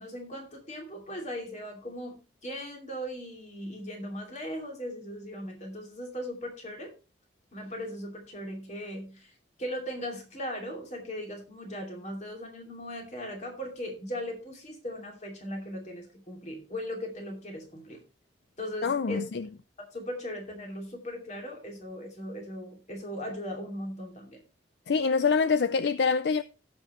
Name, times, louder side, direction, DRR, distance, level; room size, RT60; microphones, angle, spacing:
voice 1, 0.0-6.9 7.5-9.3 9.6-18.0 18.6-19.2 19.9-24.4, equal, 40° left, 2.7 m, -38 dB
voice 2, 18.8-19.5 24.9-26.4, left 5 dB, 60° left, 0.4 m, -25 dB
17.0 x 6.1 x 3.1 m
head